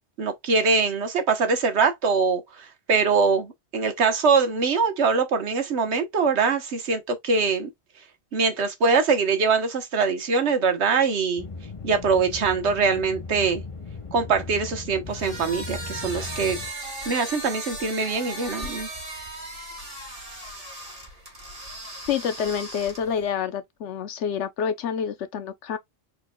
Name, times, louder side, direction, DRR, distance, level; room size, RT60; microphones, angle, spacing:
voice 1, 0.2-7.7 8.3-11.4 11.8-13.6 14.1-16.6 17.1-18.9, right 5 dB, 70° right, 1.3 m, -23 dB
sound 1, 11.4-16.7, left 4 dB, 30° left, 0.8 m, -38 dB
sound 2, 15.1-23.3, right 1 dB, 30° right, 2.2 m, -37 dB
voice 2, 22.1-25.8, left 7 dB, 90° left, 1.1 m, -28 dB
4.4 x 4.4 x 2.2 m
omnidirectional pair, 1.2 m